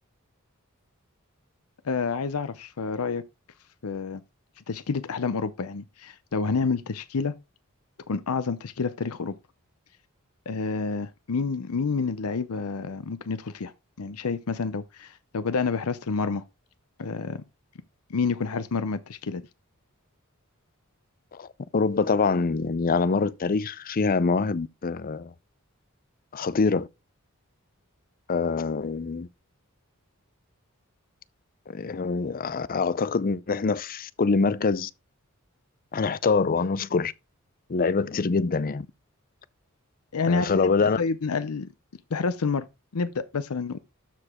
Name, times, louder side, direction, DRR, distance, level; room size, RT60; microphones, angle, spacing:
voice 1, 1.8-3.2 3.8-4.2 4.7-7.3 8.1-9.4 10.5-13.7 14.0-16.4 17.0-17.4 18.1-19.4 40.1-41.7 42.1-42.7 42.9-43.8, left 4 dB, 85° left, 0.6 m, -29 dB
voice 2, 21.3-25.3 26.3-26.9 28.3-29.3 31.7-34.9 35.9-37.1 37.7-38.9 40.3-41.0, left 4 dB, 40° left, 0.5 m, -25 dB
13.0 x 5.0 x 3.6 m
head